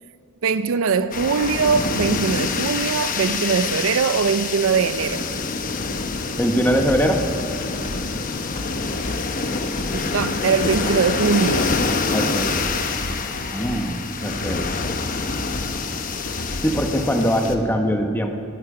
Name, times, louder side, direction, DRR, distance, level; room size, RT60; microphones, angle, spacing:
voice 1, 0.4-5.3 9.9-11.7, right 5 dB, 75° right, 0.5 m, -21 dB
sound 1, 1.1-17.6, left 4 dB, 40° left, 0.9 m, -26 dB
voice 2, 6.4-7.2 12.1-12.6 13.5-14.0 14.2-14.7 16.6-18.3, equal, 10° left, 1.1 m, -21 dB
sound 2, 6.6-7.3 7.6-8.0 8.6-9.3 9.5-10.0 10.5-11.2 11.4-11.9 12.4-13.8 14.3-15.0 15.3-15.8 16.2-16.9 17.2-17.7, left 1 dB, 75° left, 1.6 m, -33 dB
19.0 x 13.5 x 4.9 m
head